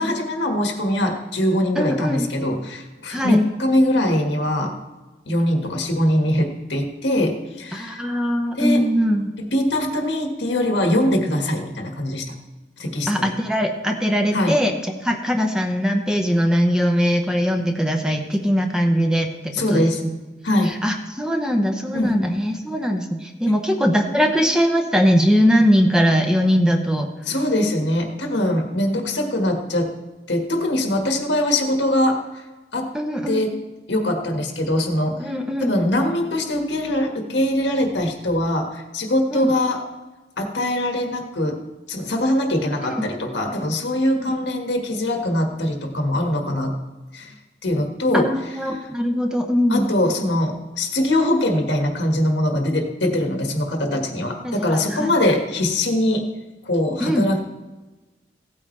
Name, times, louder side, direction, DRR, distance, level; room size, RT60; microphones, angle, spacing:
voice 1, 0.0-4.7 5.2-8.0 8.6-8.9 9.4-12.2 12.8-13.3 14.3-14.6 19.5-20.0 20.4-20.8 21.9-22.4 23.5-23.6 27.2-29.9 30.3-32.2 32.7-32.9 33.3-33.5 33.9-35.3 35.6-39.8 40.4-41.6 41.9-46.7 47.1-47.3 47.6-48.3 49.7-56.3 56.6-57.4, left 1 dB, 85° left, 2 dB, 1.7 m, -22 dB
voice 2, 1.8-2.3 3.1-3.4 7.7-9.3 13.1-20.1 20.6-27.1 32.9-33.4 35.2-35.7 39.3-39.5 43.0-43.1 44.1-44.3 48.1-49.9 54.4-55.4 57.0-57.2, equal, 5° right, 4 dB, 0.7 m, -21 dB
16.5 x 8.6 x 3.3 m, 1.2 s
head